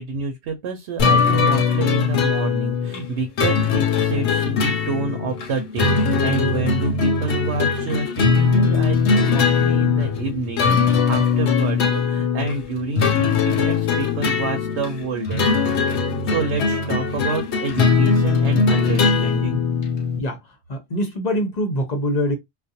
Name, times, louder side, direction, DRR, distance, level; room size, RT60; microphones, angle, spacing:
voice 1, 0.0-15.5 16.1-19.6, right 4 dB, 80° right, 0.9 m, -28 dB
sound 1, 1.0-20.2, left 5 dB, 85° left, 0.9 m, -20 dB
voice 2, 20.7-22.4, equal, 45° left, 0.6 m, -24 dB
2.4 x 2.0 x 2.6 m
omnidirectional pair, 1.1 m